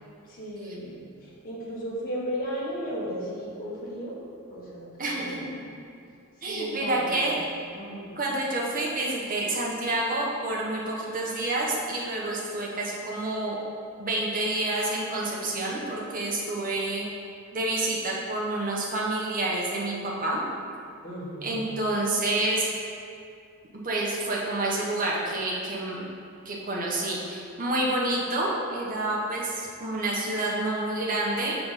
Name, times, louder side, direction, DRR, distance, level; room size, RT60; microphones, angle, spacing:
voice 1, 0.3-4.2 4.5-5.4 6.5-7.3 7.7-8.1 21.0-21.5, equal, 40° left, -6 dB, 1.4 m, -35 dB
voice 2, 5.0-5.6 6.4-7.4 8.2-13.6 14.0-17.1 17.5-20.4 21.4-22.7 23.8-26.1 26.4-31.5, right 2 dB, 40° right, -4 dB, 1.0 m, -28 dB
5.7 x 3.4 x 5.6 m, 2.5 s
head